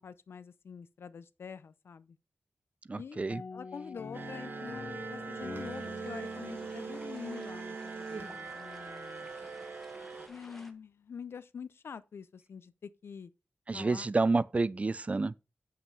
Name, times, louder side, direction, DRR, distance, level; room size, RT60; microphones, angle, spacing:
voice 1, 0.0-2.2 3.0-3.2 3.5-9.3 10.3-13.3 13.7-14.1, left 6 dB, 80° left, 0.5 m, -46 dB
voice 2, 2.9-3.4 13.7-15.3, right 3 dB, 35° right, 0.4 m, -29 dB
sound 1, 3.3-7.9, left 4 dB, 55° left, 0.9 m, -47 dB
sound 2, 4.1-10.3, right 4 dB, 60° right, 1.3 m, -41 dB
sound 3, 5.5-10.7, equal, 5° left, 1.4 m, -54 dB
7.5 x 5.8 x 4.5 m
wide cardioid pair, 75°, 4 cm